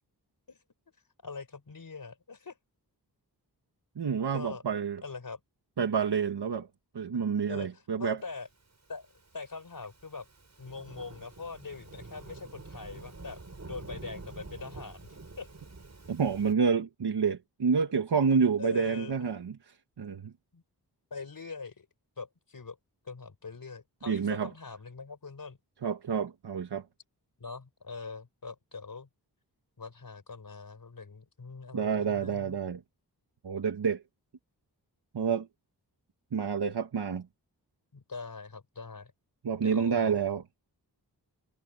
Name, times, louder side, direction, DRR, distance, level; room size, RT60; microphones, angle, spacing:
voice 1, 1.2-2.6 4.3-4.6 5.0-5.4 7.5-8.5 8.9-9.1 9.3-10.3 10.6-15.1 15.4-15.5 18.6-19.3 20.5-20.6 21.1-21.9 22.2-22.8 23.0-25.6 27.4-29.1 29.8-32.6 37.9-39.1 39.6-40.2, left 4 dB, 60° left, 4.6 m, -42 dB
voice 2, 4.0-5.0 5.8-6.7 6.9-8.2 16.1-19.6 20.0-20.3 24.1-24.5 25.8-26.8 31.7-32.8 33.4-34.0 35.1-35.5 36.3-37.2 39.4-40.4, right 6 dB, 85° right, 1.4 m, -28 dB
Thunderstorm / Rain, 8.8-16.5, right 3 dB, 45° right, 7.1 m, -48 dB
wide cardioid pair, 105°, 39 cm